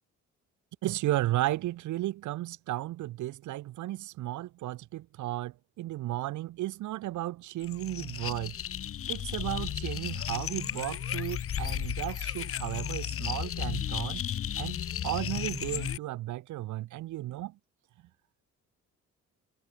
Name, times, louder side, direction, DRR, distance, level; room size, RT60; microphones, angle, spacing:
voice 1, 0.8-8.6 9.1-14.2 14.6-17.6, right 15 dB, 75° right, 0.7 m, -34 dB
sound 1, 7.6-16.0, left 10 dB, 45° left, 0.9 m, -34 dB
cardioid pair, 90°, 30 cm